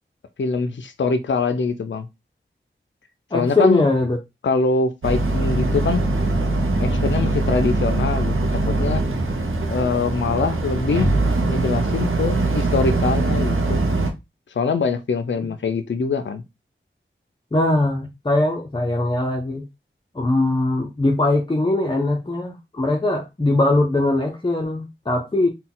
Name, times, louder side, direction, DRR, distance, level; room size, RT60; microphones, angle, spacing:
voice 1, 0.4-2.1 3.3-3.9 4.4-6.0 6.8-8.3 8.7-9.0 9.7-11.1 11.4-13.8 14.5-16.4, left 4 dB, 65° left, 0.4 m, -23 dB
voice 2, 3.3-4.2 15.4-15.5 17.5-19.7 20.1-25.5, left 2 dB, 25° left, 0.6 m, -21 dB
Boat Water vehicle, 5.0-14.1, right 2 dB, 85° right, 0.7 m, -22 dB
4.0 x 2.2 x 3.8 m
wide cardioid pair, 40°, 20 cm